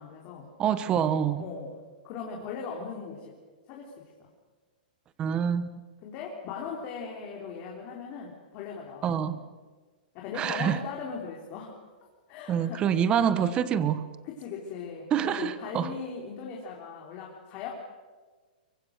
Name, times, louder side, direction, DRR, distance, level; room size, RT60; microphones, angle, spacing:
voice 1, 0.0-0.5 1.4-1.8 2.0-3.3 3.7-4.0 6.0-9.5 10.1-11.8 12.3-13.0 14.2-17.7, left 5 dB, 35° left, -2 dB, 3.5 m, -39 dB
voice 2, 0.6-1.4 5.2-5.7 9.0-9.4 10.4-10.8 12.5-14.0 15.1-15.9, right 8 dB, 20° right, 13 dB, 1.1 m, -26 dB
24.0 x 23.5 x 6.6 m, 1.4 s
hypercardioid pair, 160°, 5 cm